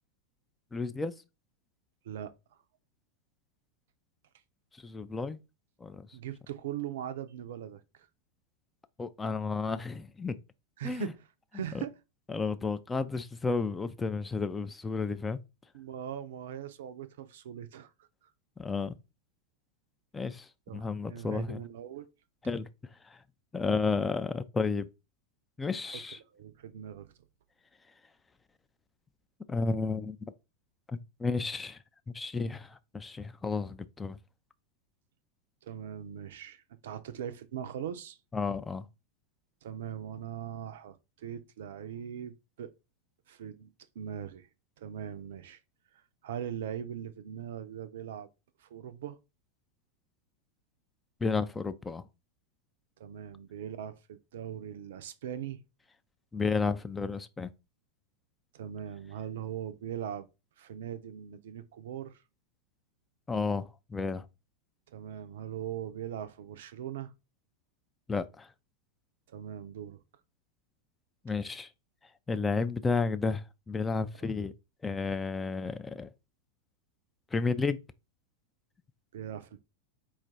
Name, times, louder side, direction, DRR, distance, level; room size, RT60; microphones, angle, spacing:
voice 1, 0.7-1.1 4.8-5.4 5.8-6.0 9.0-10.4 10.8-11.1 12.3-15.4 18.6-18.9 20.1-21.6 22.5-22.7 23.1-23.2 23.5-24.9 25.6-26.2 29.5-30.3 30.9-31.8 32.1-34.2 38.3-38.8 51.2-52.0 56.3-57.5 63.3-64.2 68.1-68.5 71.2-71.7 72.3-74.5 74.8-76.1 77.3-77.8, left 4 dB, 10° left, 0.3 m, -32 dB
voice 2, 6.1-8.1 10.8-11.3 11.5-11.9 15.7-17.9 20.7-22.1 26.3-27.1 35.6-38.2 39.6-42.7 43.3-44.5 44.8-45.6 46.2-48.3 48.6-49.2 53.0-55.6 58.5-60.3 60.6-62.1 64.9-67.1 69.3-70.0 79.1-79.6, right 10 dB, 55° right, 0.4 m, -40 dB
4.4 x 2.4 x 4.2 m
figure-of-eight pair, 90°, 0 cm